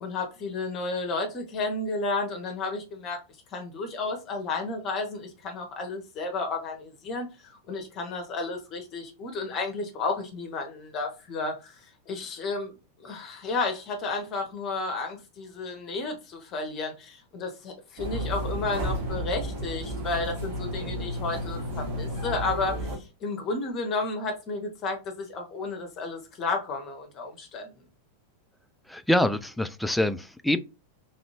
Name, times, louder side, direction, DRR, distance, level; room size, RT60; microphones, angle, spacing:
voice 1, 0.0-3.2 3.5-12.7 13.0-27.7, left 3 dB, 35° left, 0.8 m, -32 dB
sound 1, 18.0-23.0, equal, 55° right, 1.3 m, -32 dB
voice 2, 28.9-30.6, left 1 dB, ahead, 0.3 m, -25 dB
3.3 x 2.6 x 2.9 m
figure-of-eight pair, 90°, 0 cm